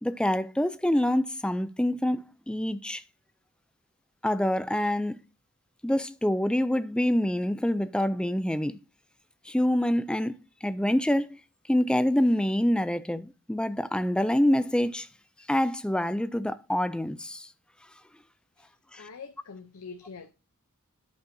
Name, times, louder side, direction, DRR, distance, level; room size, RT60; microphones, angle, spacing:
voice 1, 0.0-3.0 4.2-5.2 5.8-8.8 9.5-11.4 11.7-15.1 15.5-17.5 18.9-19.0, left 1 dB, 5° left, 0.3 m, -26 dB
voice 2, 18.6-20.3, left 5 dB, 85° left, 0.7 m, -45 dB
11.5 x 5.3 x 2.7 m
head